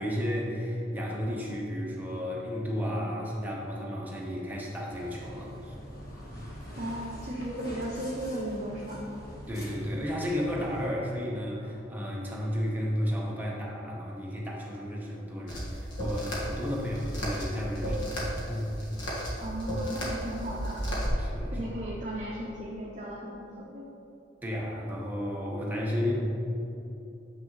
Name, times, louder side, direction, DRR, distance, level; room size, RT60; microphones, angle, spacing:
voice 1, 0.0-5.8 6.3-6.6 9.5-18.2 18.5-18.8 21.2-21.6 24.4-26.1, equal, 10° right, -4 dB, 0.9 m, -33 dB
sound 1, 4.9-10.9, equal, 50° left, 1.3 m, -44 dB
voice 2, 6.8-9.0 19.4-20.8 21.5-23.8, right 1 dB, 40° right, -4 dB, 0.6 m, -36 dB
sound 2, 15.5-21.1, equal, 70° left, 1.5 m, -34 dB
7.2 x 6.0 x 3.1 m, 2.8 s
head